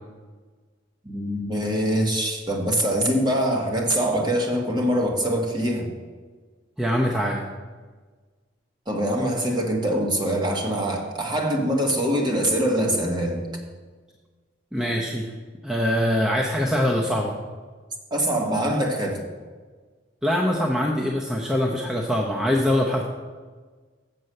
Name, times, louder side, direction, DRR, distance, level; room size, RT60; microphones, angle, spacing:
voice 1, 1.0-5.9 8.9-13.4 18.1-19.2, right 1 dB, 25° right, 0 dB, 1.5 m, -24 dB
voice 2, 6.8-7.4 14.7-15.3 15.6-17.3 20.2-23.0, equal, 5° right, -2 dB, 0.7 m, -23 dB
7.7 x 6.9 x 6.5 m, 1.4 s
head